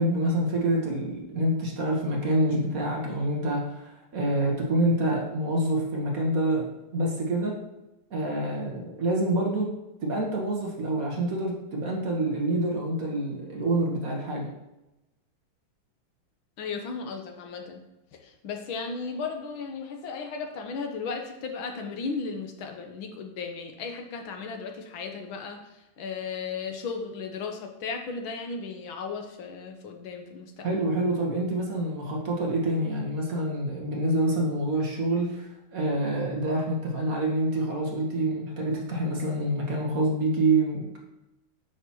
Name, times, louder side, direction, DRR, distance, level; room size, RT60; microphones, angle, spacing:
voice 1, 0.0-6.7 6.9-7.5 8.1-9.7 10.0-14.5 30.6-41.0, right 1 dB, 50° right, -1 dB, 1.5 m, -27 dB
voice 2, 16.6-17.8 18.1-30.8, left 4 dB, 80° left, 4 dB, 1.7 m, -35 dB
8.3 x 6.0 x 3.0 m, 0.96 s
omnidirectional pair, 2.2 m